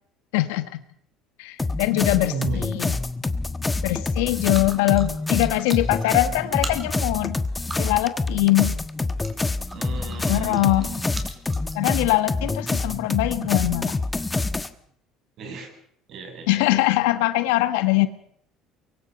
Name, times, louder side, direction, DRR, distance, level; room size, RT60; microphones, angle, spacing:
voice 1, 0.3-0.8 1.4-3.0 3.8-7.3 7.8-8.7 10.3-10.9 11.7-14.0 16.5-18.1, left 17 dB, 85° left, 12 dB, 1.5 m, -22 dB
sound 1, 1.6-14.7, left 3 dB, 15° left, 1.4 m, -27 dB
voice 2, 2.2-2.6 9.7-11.1 15.4-15.7 16.1-16.8, right 5 dB, 60° right, 3 dB, 7.7 m, -34 dB
sound 2, 4.5-12.5, right 3 dB, 25° right, 4.2 m, -42 dB
24.0 x 22.5 x 5.4 m, 0.66 s
supercardioid pair, 85°, 0 cm